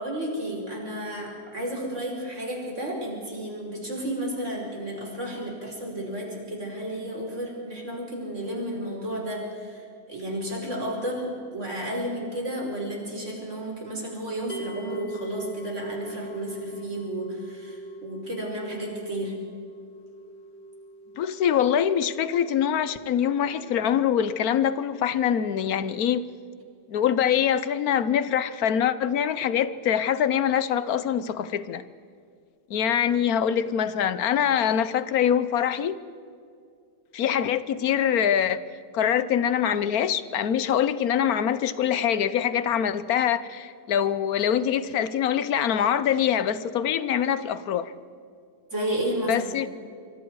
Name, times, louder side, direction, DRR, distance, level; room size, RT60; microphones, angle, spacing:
voice 1, 0.0-19.4 48.7-49.4, right 1 dB, 40° right, -1 dB, 5.2 m, -32 dB
sound 1, 14.5-25.7, right 2 dB, 40° left, 1.5 m, -42 dB
voice 2, 21.2-26.2 26.9-31.8 32.7-36.0 37.1-38.6 38.9-47.9 49.3-49.7, left 9 dB, 65° left, 14 dB, 1.2 m, -24 dB
25.0 x 25.0 x 4.7 m, 2.4 s
omnidirectional pair, 1.8 m